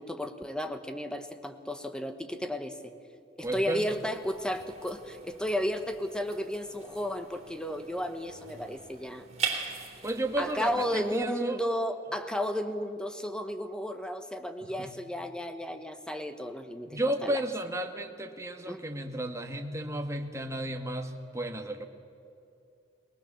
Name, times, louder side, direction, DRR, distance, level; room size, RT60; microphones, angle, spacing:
voice 1, 0.0-2.9 3.4-9.2 10.4-17.4 18.7-18.8, equal, 5° left, 8 dB, 1.2 m, -33 dB
voice 2, 3.4-4.0 10.0-11.6 14.6-14.9 16.9-21.9, right 1 dB, 15° right, 4 dB, 1.5 m, -33 dB
sound 1, 3.4-11.2, right 6 dB, 35° right, 3.3 m, -41 dB
22.5 x 19.5 x 7.3 m, 2.6 s
head